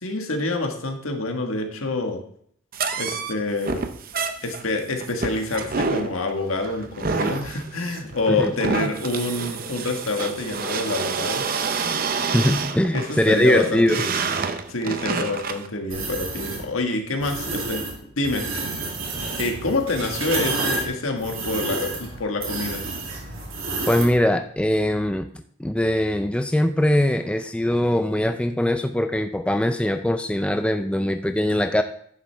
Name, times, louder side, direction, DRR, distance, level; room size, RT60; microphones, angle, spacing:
voice 1, 0.0-2.2 3.0-3.9 4.4-11.4 12.9-14.1 14.7-17.8 18.2-18.5 19.4-22.8, left 2 dB, 85° left, 3 dB, 1.5 m, -27 dB
sound 1, 2.7-15.7, right 5 dB, 45° right, 0.6 m, -28 dB
voice 2, 12.1-14.0 23.9-25.3 25.6-31.8, left 1 dB, 5° left, 7 dB, 0.4 m, -21 dB
sound 2, 15.9-16.6 17.2-17.9 18.2-24.2, right 3 dB, 90° right, 2.6 m, -29 dB
10.0 x 7.3 x 3.4 m, 0.63 s
head